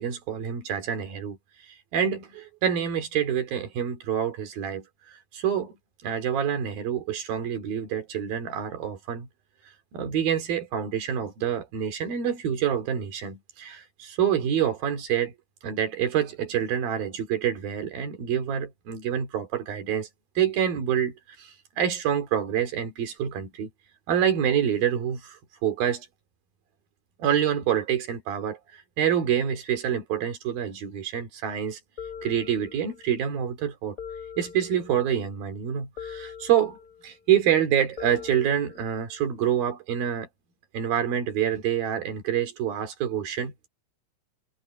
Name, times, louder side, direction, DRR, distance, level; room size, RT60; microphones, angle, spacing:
voice 1, 0.0-1.4 1.9-5.8 6.0-9.3 9.9-15.3 15.6-20.1 20.4-23.7 24.1-26.1 27.2-31.8 32.2-34.0 34.4-36.8 37.0-40.3 40.7-43.7, right 9 dB, 80° right, 4.5 m, -27 dB
sound 1, 32.0-33.1 34.0-35.2 36.0-37.1 38.0-39.2, left 7 dB, 25° left, 3.3 m, -42 dB
omnidirectional pair, 4.1 m